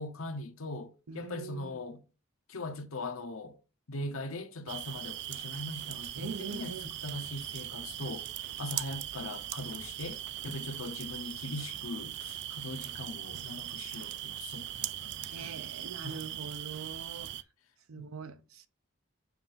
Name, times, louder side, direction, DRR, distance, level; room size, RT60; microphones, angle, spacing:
voice 1, 0.0-2.0 2.5-3.6 3.9-8.3 8.6-15.6 16.0-16.3 17.9-18.0, left 2 dB, 85° left, 0.9 m, -40 dB
voice 2, 1.1-1.8 6.2-6.9 15.3-17.3 17.9-18.7, right 5 dB, 90° right, 0.7 m, -43 dB
sound 1, 4.7-17.4, right 13 dB, 55° right, 0.3 m, -40 dB
7.2 x 2.6 x 5.7 m
head